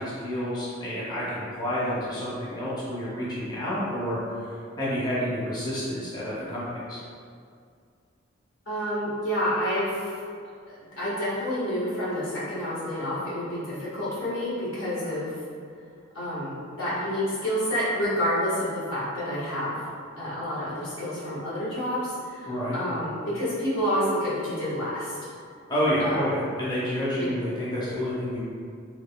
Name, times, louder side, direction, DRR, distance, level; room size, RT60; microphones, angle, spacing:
voice 1, 0.0-7.0 22.5-22.8 25.7-28.4, equal, 20° left, -9 dB, 0.6 m, -29 dB
voice 2, 8.7-10.2 10.7-15.3 16.1-19.8 20.2-25.2 26.0-26.4 27.2-27.3, equal, 80° left, -9 dB, 1.3 m, -29 dB
3.8 x 3.1 x 2.2 m, 2.3 s
head